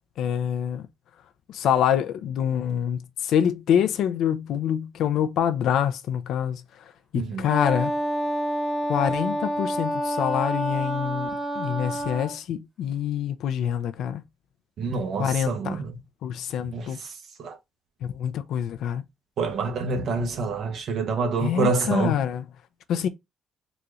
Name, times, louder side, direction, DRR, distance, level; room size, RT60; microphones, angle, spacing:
voice 1, 0.2-0.9 1.5-6.6 7.1-7.9 8.9-11.3 11.6-14.2 15.2-15.8 16.2-17.0 18.0-19.0 21.4-22.4 22.9-23.1, left 9 dB, 80° left, 0.4 m, -26 dB
voice 2, 7.1-7.5 14.8-16.0 16.7-17.1 17.4-17.6 19.4-22.2, right 4 dB, 70° right, 0.8 m, -27 dB
Wind instrument woodwind instrument, 7.5-12.4, equal, 25° right, 0.9 m, -28 dB
4.0 x 2.4 x 3.0 m
cardioid pair, 90°, 0 cm